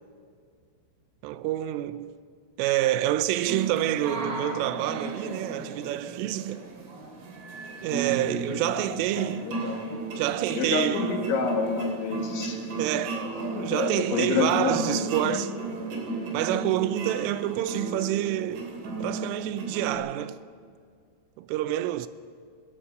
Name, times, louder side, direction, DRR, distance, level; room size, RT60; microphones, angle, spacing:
voice 1, 1.2-2.2 2.6-6.7 7.8-9.5 10.2-11.1 12.8-13.3 13.6-15.5 16.3-18.7 19.0-20.4 21.4-22.1, right 13 dB, 90° right, 3.3 m, -27 dB
sound 1, 3.5-19.9, right 2 dB, 60° right, 5.1 m, -34 dB
voice 2, 8.5-9.8 10.5-12.6 13.5-15.4, left 5 dB, 70° left, 4.4 m, -29 dB
21.0 x 18.0 x 7.8 m
omnidirectional pair, 5.7 m